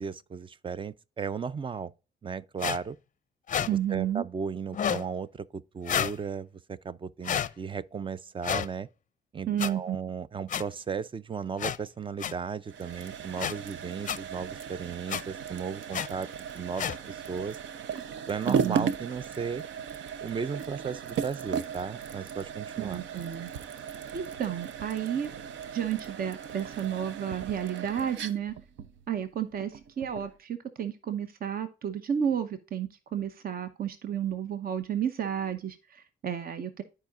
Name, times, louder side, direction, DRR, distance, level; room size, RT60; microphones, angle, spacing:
voice 1, 0.0-1.9 2.2-3.0 3.6-8.9 9.3-16.3 16.5-17.6 18.3-19.6 20.2-23.0, right 6 dB, 25° right, 0.4 m, -35 dB
sound 1, 2.6-2.8 3.5-3.7 4.7-5.0 5.9-6.2 7.2-7.5 8.4-8.7 9.6-9.7 10.5-10.6 11.6-11.8 12.2-12.3 13.4-13.5 14.1-14.2 15.1-15.2 15.9-16.1 16.8-17.0, left 8 dB, 40° left, 0.5 m, -29 dB
voice 2, 3.7-4.2 9.5-10.0 18.5-18.9 22.8-23.5 24.1-25.3 25.7-28.5 29.1-36.8, right 9 dB, 50° right, 0.8 m, -32 dB
sound 2, 12.7-30.4, right 7 dB, 75° right, 0.7 m, -37 dB
13.0 x 4.9 x 2.4 m
cardioid pair, 90°, 20 cm